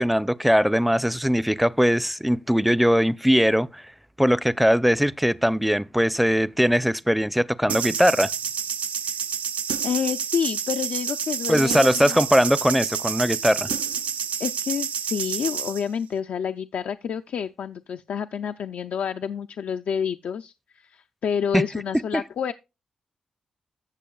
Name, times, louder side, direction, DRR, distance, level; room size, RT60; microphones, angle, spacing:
voice 1, 0.0-3.8 4.2-8.3 11.5-13.7 21.5-21.6 22.1-22.2, equal, ahead, 0.5 m, -20 dB
sound 1, 7.7-15.8, right 7 dB, 70° right, 0.4 m, -29 dB
voice 2, 9.8-12.2 14.4-22.5, left 7 dB, 75° left, 0.4 m, -29 dB
15.0 x 6.8 x 2.3 m
supercardioid pair, 40°, 3 cm